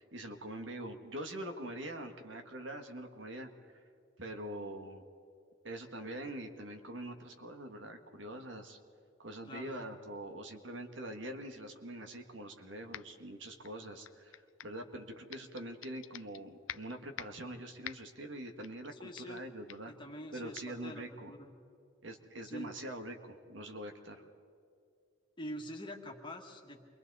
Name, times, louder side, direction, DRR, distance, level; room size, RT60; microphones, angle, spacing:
voice 1, 0.0-3.9 4.2-5.0 5.6-8.8 9.2-19.9 20.3-21.3 22.0-24.2, right 1 dB, 65° right, 5 dB, 1.7 m, -44 dB
voice 2, 9.5-9.8 19.0-19.4 19.9-21.5 22.4-22.7 25.4-26.8, equal, 25° left, 1 dB, 2.0 m, -45 dB
sound 1, 12.9-13.3 13.6-14.8 15.3-16.4 16.7-17.5 17.8-18.2 18.6-18.9 19.2-19.4 19.7-19.9 20.5-20.7, left 10 dB, 70° left, 0.5 m, -47 dB
28.5 x 23.0 x 4.1 m, 2.3 s
head